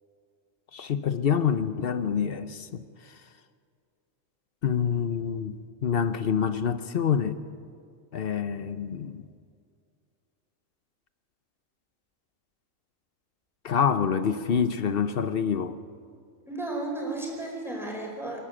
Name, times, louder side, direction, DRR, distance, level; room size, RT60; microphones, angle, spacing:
voice 1, 0.7-2.8 4.6-7.4 8.1-9.2 13.6-15.8, left 7 dB, 50° left, 12 dB, 0.9 m, -26 dB
voice 2, 16.4-18.4, right 2 dB, ahead, -1 dB, 4.7 m, -33 dB
26.0 x 11.5 x 8.7 m, 2.2 s
omnidirectional pair, 1.4 m